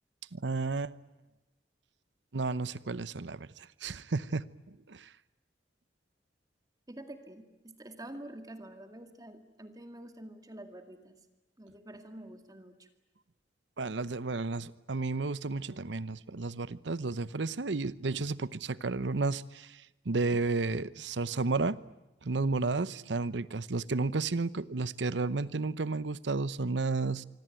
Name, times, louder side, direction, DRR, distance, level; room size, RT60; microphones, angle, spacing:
voice 1, 0.3-0.9 2.3-5.1 13.8-19.8 20.0-21.8 22.2-27.2, right 3 dB, 85° right, 17 dB, 0.9 m, -32 dB
voice 2, 6.9-11.2 11.6-12.9, right 1 dB, 20° right, 7 dB, 2.1 m, -47 dB
25.5 x 25.0 x 9.1 m, 1.0 s
head